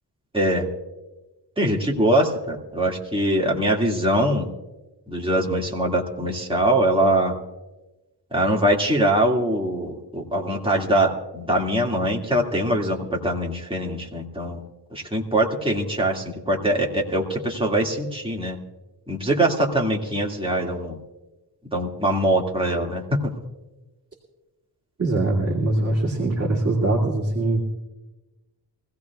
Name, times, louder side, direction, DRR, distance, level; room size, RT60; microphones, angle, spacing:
voice 1, 0.3-0.7 1.6-4.5 5.1-7.3 8.3-14.6 14.9-18.6 19.1-21.0 21.7-23.3, right 1 dB, 10° right, -2 dB, 2.1 m, -22 dB
voice 2, 25.0-27.6, right 2 dB, 35° right, -4 dB, 2.4 m, -22 dB
24.0 x 16.5 x 2.3 m, 1.1 s
wide cardioid pair, 100°, 43 cm